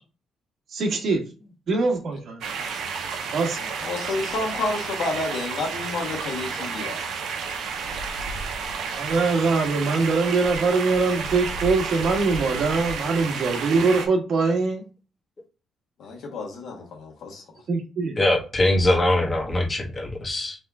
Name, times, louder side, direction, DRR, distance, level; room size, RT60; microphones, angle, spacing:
voice 1, 0.7-1.2 1.7-2.5 3.3-3.7 8.9-14.8 17.7-18.2, right 4 dB, 60° right, 1.5 m, -23 dB
sound 1, 2.4-14.1, right 5 dB, 80° right, 0.9 m, -31 dB
voice 2, 3.8-7.0 16.0-17.4, left 3 dB, 75° left, 1.5 m, -30 dB
voice 3, 18.2-20.6, left 1 dB, 30° left, 1.5 m, -22 dB
3.6 x 3.4 x 3.6 m
cardioid pair, 90°, 0 cm